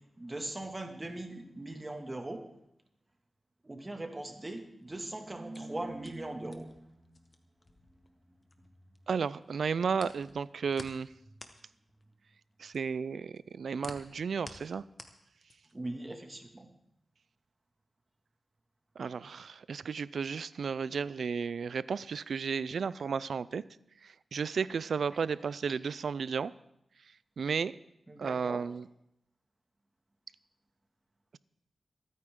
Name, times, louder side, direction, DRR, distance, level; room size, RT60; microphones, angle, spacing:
voice 1, 0.2-2.4 3.6-6.7 7.0-7.2 15.7-16.7 25.1-25.2 28.1-28.6, right 2 dB, 25° right, 4 dB, 2.1 m, -40 dB
sound 1, 4.8-9.0 9.3-15.9, left 2 dB, 40° left, 1.4 m, -52 dB
voice 2, 9.1-11.1 12.6-14.8 19.0-23.6 24.0-26.5 27.4-27.7 28.2-28.9, right 6 dB, 85° right, 18 dB, 0.4 m, -33 dB
23.5 x 9.5 x 3.7 m, 0.80 s
cardioid pair, 65°, 0 cm